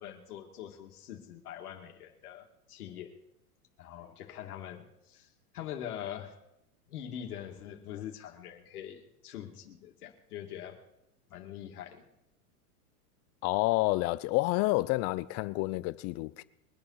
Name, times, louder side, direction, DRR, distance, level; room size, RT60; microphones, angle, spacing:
voice 1, 0.0-3.1 3.8-6.4 6.9-10.8 11.3-12.0, left 10 dB, 75° left, 2.4 m, -43 dB
voice 2, 13.4-16.4, left 20 dB, 35° left, 0.6 m, -29 dB
23.0 x 8.5 x 5.7 m
hypercardioid pair, 125°, 45 cm